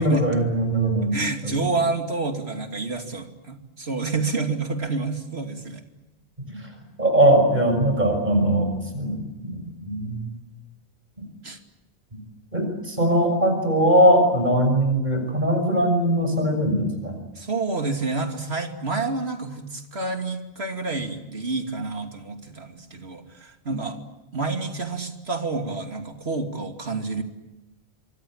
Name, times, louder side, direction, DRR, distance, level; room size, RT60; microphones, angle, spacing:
voice 1, 0.0-1.5 6.5-6.7 7.0-8.7 8.9-10.3 12.1-12.2 12.5-17.2 23.7-23.8, right 1 dB, 45° right, 5 dB, 6.2 m, -21 dB
voice 2, 1.1-5.8 11.4-11.6 17.4-24.0 24.3-27.2, right 3 dB, 70° right, 5 dB, 3.0 m, -28 dB
26.0 x 23.5 x 8.9 m, 1.0 s
omnidirectional pair, 1.1 m